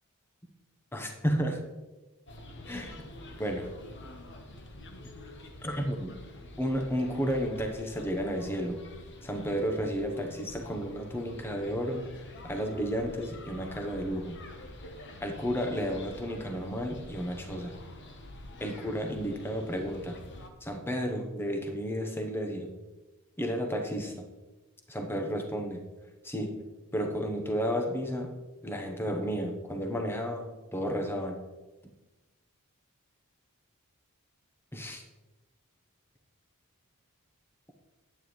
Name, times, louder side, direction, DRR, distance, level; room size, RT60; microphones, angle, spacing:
voice 1, 0.9-1.6 2.7-3.1 3.4-3.7 5.6-6.2 6.6-8.8 9.2-14.4 15.2-17.7 18.6-20.2 20.6-22.7 23.4-24.1 24.9-25.8 26.2-26.6 26.9-28.3 28.6-31.4 34.7-35.0, equal, 10° left, 3 dB, 0.9 m, -32 dB
sound 1, 2.3-20.5, left 1 dB, 55° left, 1.0 m, -47 dB
9.7 x 8.8 x 3.1 m, 1.1 s
head